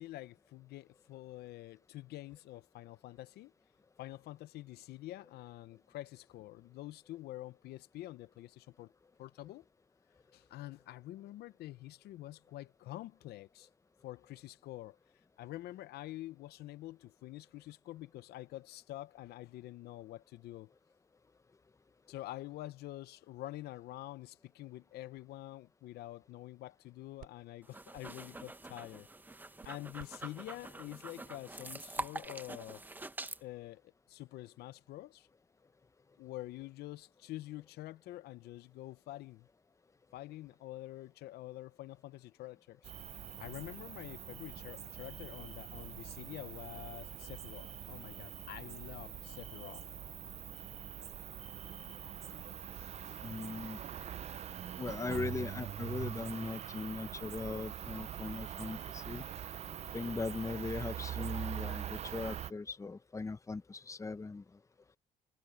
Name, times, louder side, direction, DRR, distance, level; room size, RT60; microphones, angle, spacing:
voice 1, 0.0-3.5 4.0-8.9 9.2-9.7 10.3-13.7 14.0-15.0 15.4-20.7 22.1-29.1 29.6-32.8 33.4-35.3 36.2-39.5 40.1-42.9 43.4-49.8 53.0-53.2, left 16 dB, 75° left, 0.6 m, -47 dB
sound 1, 24.7-32.3, right 13 dB, 70° right, 5.3 m, -64 dB
sound 2, 27.6-33.4, right 2 dB, 10° right, 1.0 m, -45 dB
Cricket, 42.8-62.5, right 10 dB, 40° right, 0.5 m, -44 dB
voice 2, 53.2-53.8 54.8-59.3 59.9-64.4, left 3 dB, 20° left, 0.8 m, -39 dB
cardioid pair, 110°, 17 cm